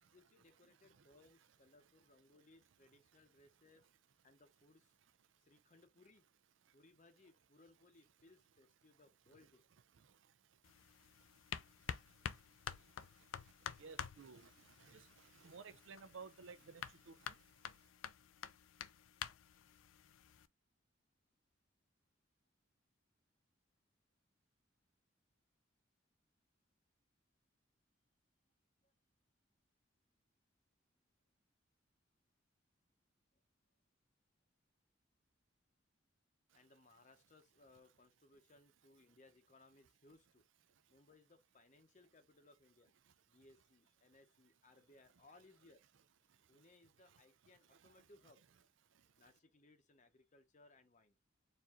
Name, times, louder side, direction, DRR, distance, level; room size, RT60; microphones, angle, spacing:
voice 1, 0.1-3.8 4.2-4.9 5.4-6.2 6.7-9.6 28.8-28.9 36.5-40.4 40.9-42.9 43.3-45.8 46.5-48.4 49.2-51.2, left 2 dB, 40° left, 0.7 m, -66 dB
sound 1, 10.6-20.5, left 8 dB, 90° left, 0.4 m, -50 dB
voice 2, 13.8-14.5 14.9-15.0 15.4-17.1, right 5 dB, 80° right, 0.5 m, -54 dB
4.4 x 2.6 x 3.6 m
head